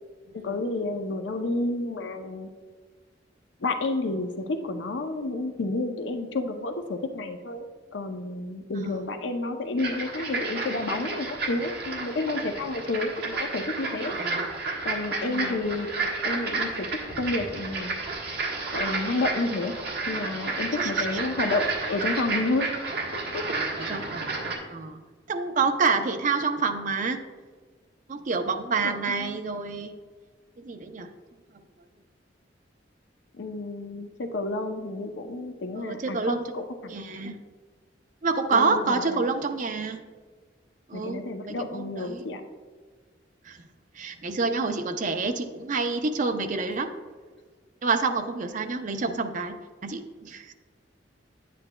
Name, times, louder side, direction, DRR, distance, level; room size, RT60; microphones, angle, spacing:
voice 1, 0.3-2.5 3.6-14.1 14.8-16.9 17.2-18.0 18.7-19.7 20.1-22.7 23.3-23.4 28.8-29.4 33.3-36.9 38.5-39.2 40.9-42.4, left 2 dB, 80° left, 6 dB, 0.6 m, -30 dB
voice 2, 8.7-9.1 14.1-14.4 15.2-15.5 20.8-21.1 23.8-24.4 24.7-25.0 25.3-27.2 28.1-29.9 30.6-31.1 35.8-36.4 36.9-37.4 38.2-40.0 40.9-42.2 43.5-43.6 44.0-46.9 47.8-49.6 49.8-50.5, right 4 dB, 45° right, 6 dB, 0.6 m, -28 dB
sound 1, 9.8-24.6, right 3 dB, 60° right, 1.4 m, -31 dB
9.8 x 8.3 x 2.2 m, 1.5 s
head